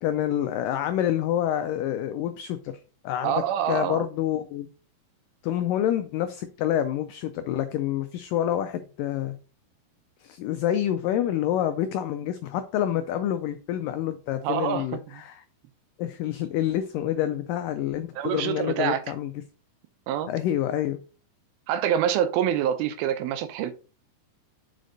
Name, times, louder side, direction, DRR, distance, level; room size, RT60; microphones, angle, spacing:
voice 1, 0.0-2.7 3.0-4.7 5.4-9.4 10.2-15.4 16.0-19.3 20.3-21.0, left 11 dB, 85° left, 1.9 m, -27 dB
voice 2, 3.2-4.0 14.4-14.9 15.1-15.2 18.2-19.0 20.1-20.3 21.7-23.7, right 9 dB, 85° right, 2.5 m, -26 dB
6.4 x 5.1 x 3.9 m
omnidirectional pair, 4.4 m